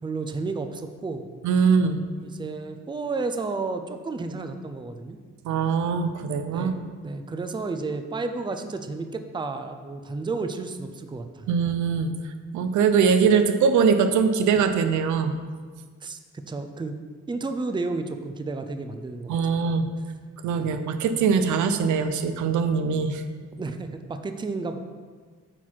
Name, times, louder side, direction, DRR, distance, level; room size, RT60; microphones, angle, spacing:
voice 1, 0.0-1.3 2.2-5.2 6.5-11.5 16.0-16.2 16.5-17.0 17.3-19.4 20.6-20.7 23.4-24.8, right 3 dB, 15° right, 7 dB, 0.5 m, -32 dB
voice 2, 1.4-2.0 5.5-6.7 11.5-12.1 12.5-15.4 19.3-19.9 20.4-23.2, right 6 dB, 75° right, 8 dB, 0.6 m, -22 dB
8.8 x 4.1 x 4.6 m, 1.5 s
cardioid pair, 90°, 30 cm